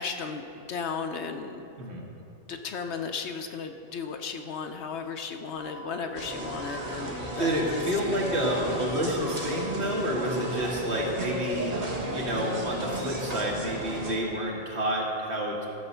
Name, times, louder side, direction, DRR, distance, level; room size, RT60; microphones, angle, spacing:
voice 1, 0.0-1.7 2.5-8.0, left 5 dB, 65° left, 6 dB, 0.9 m, -35 dB
voice 2, 1.8-2.1 7.4-11.7 12.1-15.7, equal, 55° right, -2 dB, 1.9 m, -29 dB
sound 1, 5.6-10.6, right 2 dB, 80° right, 2.9 m, -46 dB
sound 2, 6.1-14.1, right 1 dB, 30° right, 1.4 m, -34 dB
14.0 x 6.8 x 5.5 m, 2.8 s
omnidirectional pair, 1.3 m